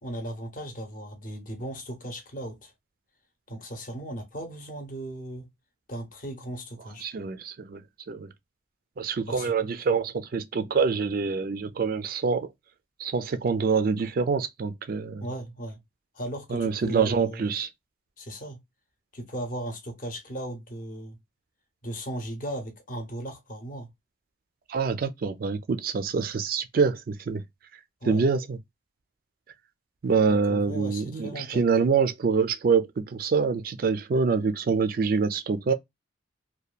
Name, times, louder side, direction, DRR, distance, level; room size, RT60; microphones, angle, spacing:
voice 1, 0.0-2.7 3.5-5.5 5.9-7.1 9.3-9.5 15.2-15.8 16.1-17.5 18.2-18.6 19.1-21.2 21.8-23.9 28.0-28.3 30.3-31.7, right 1 dB, 40° left, 0.7 m, -37 dB
voice 2, 7.0-7.8 8.1-8.3 9.0-12.5 13.0-15.2 16.5-17.7 24.7-27.4 28.0-28.6 30.0-35.7, right 5 dB, 45° right, 0.3 m, -25 dB
2.8 x 2.2 x 2.3 m
head